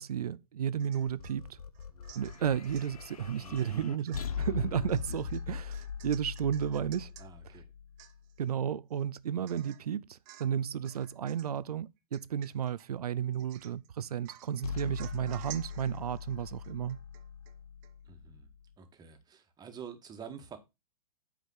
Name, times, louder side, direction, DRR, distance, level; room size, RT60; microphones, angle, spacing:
voice 1, 0.0-1.6 2.1-7.1 8.4-17.0, right 9 dB, 80° right, 0.6 m, -33 dB
Domestic sounds home sounds / Chink clink / Drip, 0.8-1.4 1.7-2.9 3.5-3.8 4.1-7.3 7.7-7.8 8.0-8.5 8.9-9.0 9.5-9.9 10.2-10.6 10.8-11.6 12.1-12.9 13.3-13.9 14.2-17.6 17.8-17.9, right 13 dB, 40° right, 1.0 m, -53 dB
sound 1, 1.1-8.4 14.6-18.7, left 7 dB, 80° left, 1.1 m, -41 dB
voice 2, 3.4-4.0 7.2-7.7 18.0-18.5 18.8-20.6, right 6 dB, 20° right, 1.8 m, -47 dB
8.2 x 5.1 x 5.6 m
hypercardioid pair, 110°, 19 cm